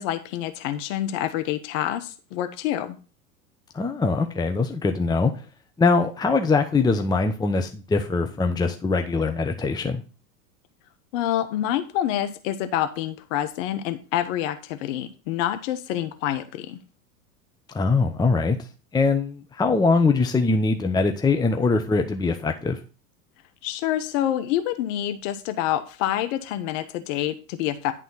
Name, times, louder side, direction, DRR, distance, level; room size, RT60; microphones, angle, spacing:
voice 1, 0.0-3.0 11.1-16.8 23.6-27.9, left 12 dB, 55° left, 9 dB, 1.0 m, -27 dB
voice 2, 3.7-5.3 5.8-10.0 17.7-18.6 18.9-22.8, left 4 dB, 10° left, 5 dB, 0.9 m, -22 dB
11.0 x 3.8 x 5.5 m, 0.34 s
hypercardioid pair, 85°, 47 cm